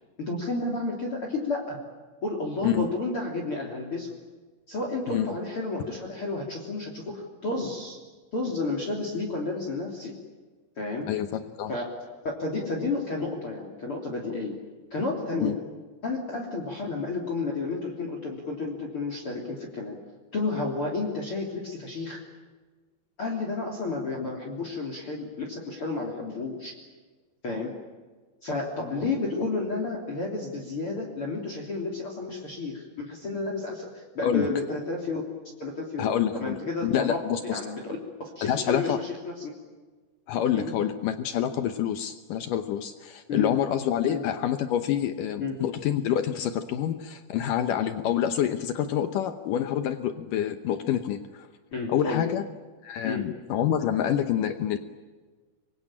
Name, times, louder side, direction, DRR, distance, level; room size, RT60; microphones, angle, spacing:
voice 1, 0.2-1.8 2.2-4.1 4.7-8.0 8.3-10.2 10.8-11.1 11.7-11.8 12.2-14.5 14.9-15.6 16.0-20.0 20.3-22.3 23.2-26.8 27.4-27.8 28.4-35.2 35.6-39.5 40.5-40.8 43.3-43.5 44.1-44.2 45.4-45.6 51.7-52.3 53.0-53.3, left 3 dB, 30° left, 1 dB, 3.6 m, -31 dB
voice 2, 11.1-11.7 15.4-15.6 34.2-34.5 36.0-37.6 38.4-39.0 40.3-51.5 51.9-52.4 52.8-54.8, left 10 dB, 90° left, 9 dB, 1.9 m, -27 dB
25.5 x 23.5 x 8.9 m, 1.4 s
omnidirectional pair, 5.2 m